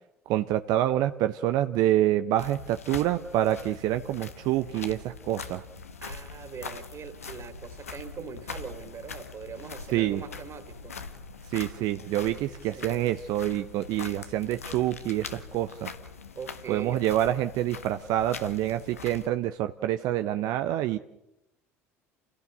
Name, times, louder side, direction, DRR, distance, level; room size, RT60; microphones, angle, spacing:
voice 1, 0.3-5.6 9.9-10.2 11.5-15.9 16.7-21.0, right 13 dB, 55° right, 9 dB, 0.8 m, -27 dB
sound 1, 2.4-19.3, left 5 dB, 85° left, 1.3 m, -42 dB
voice 2, 6.0-11.0 12.7-13.1 16.3-17.1 18.5-18.6, right 6 dB, 40° right, 8 dB, 3.3 m, -42 dB
29.0 x 16.5 x 6.8 m, 0.87 s
figure-of-eight pair, 65°, 8 cm